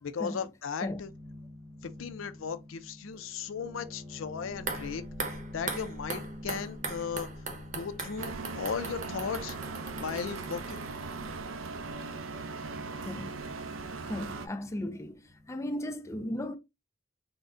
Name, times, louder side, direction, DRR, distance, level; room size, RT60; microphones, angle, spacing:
voice 1, 0.0-1.1 1.8-7.3 7.7-9.6 10.0-10.8, left 6 dB, 80° left, 0.5 m, -36 dB
sound 1, 0.8-8.5 9.6-10.2 10.8-11.4 11.7-15.7, left 1 dB, 10° right, 1.0 m, -48 dB
sound 2, 4.5-11.6 11.9-12.0, right 4 dB, 40° right, 0.8 m, -40 dB
sound 3, 8.2-14.5, right 4 dB, 90° right, 0.5 m, -39 dB
voice 2, 14.1-15.2 15.5-16.6, left 1 dB, 15° left, 0.4 m, -35 dB
3.9 x 2.1 x 3.6 m
head